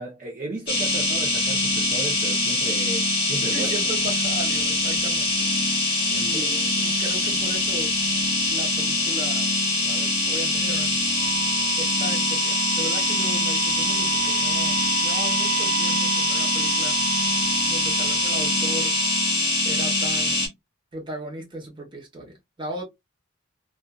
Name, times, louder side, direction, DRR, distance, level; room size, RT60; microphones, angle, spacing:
voice 1, 0.0-3.7 5.9-6.9, right 2 dB, 40° right, 0.7 m, -35 dB
sound 1, 0.7-20.5, left 2 dB, 30° left, 1.3 m, -23 dB
voice 2, 3.5-5.5 6.2-7.9 8.5-9.5 9.8-11.0 11.8-17.0 17.6-19.0 19.6-20.5 20.9-22.8, right 1 dB, 25° right, 1.0 m, -36 dB
Wind instrument woodwind instrument, 11.1-19.4, right 8 dB, 75° right, 0.3 m, -32 dB
2.6 x 2.4 x 2.3 m
head